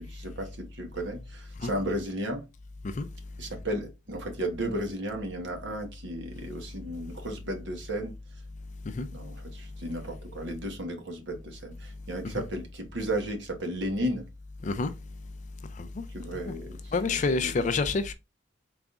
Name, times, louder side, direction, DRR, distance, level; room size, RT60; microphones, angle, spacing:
voice 1, 0.0-2.5 3.4-8.1 9.1-14.3 16.1-17.7, right 1 dB, 60° right, 1.0 m, -34 dB
voice 2, 16.9-18.1, left 4 dB, 35° left, 0.3 m, -27 dB
3.9 x 3.5 x 2.4 m
head